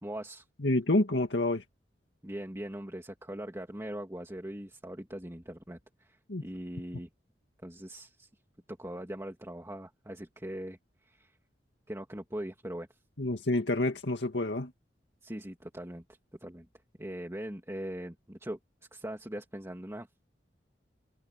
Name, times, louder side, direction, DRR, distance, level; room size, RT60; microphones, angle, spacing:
voice 1, 0.0-0.5 2.2-7.1 7.6-8.3 8.7-11.3 11.9-12.9 15.2-16.0 16.4-16.7 17.0-18.6 18.9-20.1, right 1 dB, 15° right, 2.6 m, -41 dB
voice 2, 0.6-1.6 6.3-6.4 13.2-14.7, left 2 dB, 75° left, 2.1 m, -28 dB
head